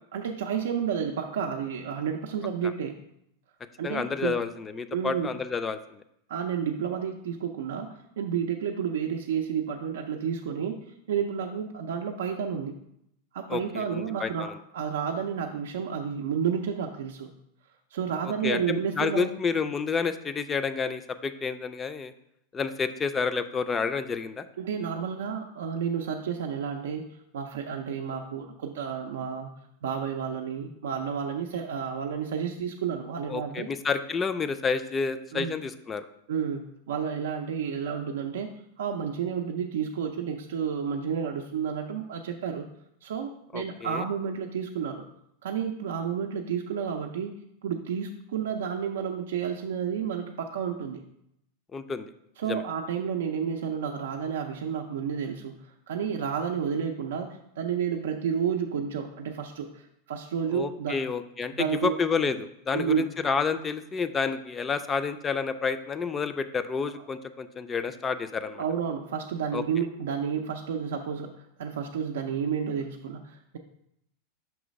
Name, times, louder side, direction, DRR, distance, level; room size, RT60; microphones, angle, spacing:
voice 1, 0.1-2.9 3.8-4.4 4.9-5.3 6.3-12.8 13.3-17.3 17.9-19.3 24.6-27.1 27.3-29.5 29.8-33.7 35.3-35.5 36.3-42.7 43.0-45.0 45.4-51.0 52.4-61.0 61.5-62.0 62.7-63.0 68.6-71.3 71.6-73.6, right 7 dB, 85° right, 2 dB, 0.4 m, -31 dB
voice 2, 3.8-6.0 13.5-14.5 18.4-22.1 22.5-24.4 33.3-36.0 43.5-44.0 51.7-52.1 52.5-52.6 60.5-68.6 69.5-69.6, left 5 dB, 20° left, 11 dB, 0.3 m, -30 dB
6.0 x 3.1 x 5.1 m, 0.77 s
supercardioid pair, 125°, 0 cm